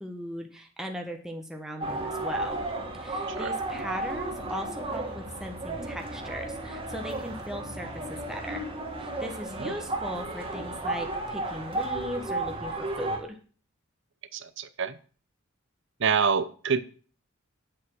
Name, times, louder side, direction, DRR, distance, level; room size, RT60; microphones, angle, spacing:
voice 1, 0.0-2.7 2.9-8.7 9.0-13.4, equal, 5° right, 2 dB, 1.2 m, -38 dB
sound 1, 1.8-13.2, right 2 dB, 25° right, 2.2 m, -33 dB
voice 2, 14.3-15.0 16.0-16.8, right 6 dB, 60° right, 13 dB, 0.8 m, -27 dB
8.6 x 7.8 x 6.2 m, 0.41 s
head